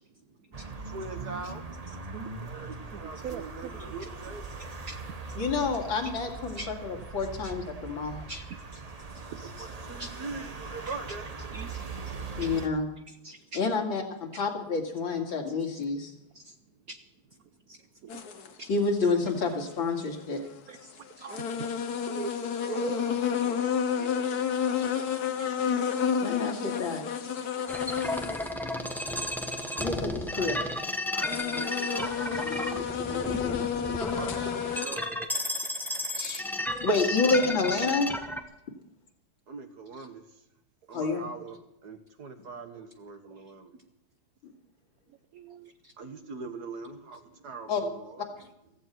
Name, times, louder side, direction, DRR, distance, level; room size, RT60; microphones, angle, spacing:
sound 1, 0.5-12.7, right 4 dB, 35° right, 0.6 m, -41 dB
voice 1, 0.9-1.6 2.4-4.5 9.4-11.3 22.5-24.7 25.1-25.2 30.3-30.7 31.1-32.2 32.7-35.1 39.5-40.2 40.9-43.7 46.0-48.2, right 4 dB, 55° right, 6 dB, 1.9 m, -42 dB
voice 2, 2.1-2.5 2.9-4.1 4.9-5.0 6.5-6.7 7.4-7.5 8.3-8.8 9.3-9.7 10.0-10.1 10.9-11.0 11.4-12.5 13.1-13.6 14.3-14.4 15.7-15.8 16.3-16.5 16.9-17.0 17.7-18.2 18.6-18.7 19.0-19.1 20.7-21.7 22.1-23.1 27.4-27.5 29.6-29.7 40.0-40.1 45.3-45.9, right 6 dB, 75° right, 11 dB, 0.8 m, -42 dB
voice 3, 5.4-8.2 12.4-12.9 13.5-16.1 18.7-20.4 26.2-27.0 29.8-30.6 36.1-36.5 36.8-38.1 40.9-41.3 44.4-44.5 47.7-47.8, left 4 dB, 70° left, 2 dB, 2.9 m, -28 dB
sound 2, 18.1-18.5 20.1-20.2 20.8-20.9 21.3-28.6 28.9-29.0 29.6-30.5 31.1-34.9, left 7 dB, 55° left, 1.5 m, -30 dB
sound 3, 27.7-38.4, left 1 dB, ahead, 0.7 m, -33 dB
15.5 x 15.0 x 4.6 m, 0.83 s
omnidirectional pair, 2.2 m